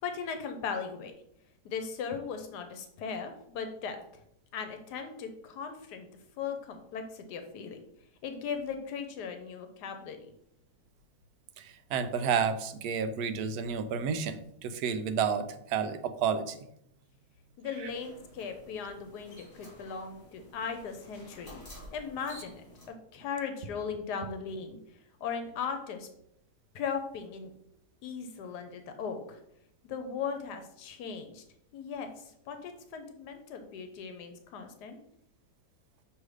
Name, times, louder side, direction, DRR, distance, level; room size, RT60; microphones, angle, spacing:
voice 1, 0.0-1.1 1.6-4.2 4.5-6.1 6.4-7.8 8.2-10.3 17.6-21.6 21.9-22.6 23.1-26.1 26.7-27.5 28.0-29.4 29.8-31.4 31.7-35.0, left 6 dB, 85° left, 7 dB, 1.3 m, -38 dB
voice 2, 11.6-16.6, right 7 dB, 75° right, 9 dB, 1.1 m, -31 dB
sound 1, 17.8-22.9, left 1 dB, 30° left, 2.8 m, -52 dB
6.3 x 3.2 x 4.8 m, 0.75 s
omnidirectional pair, 1.7 m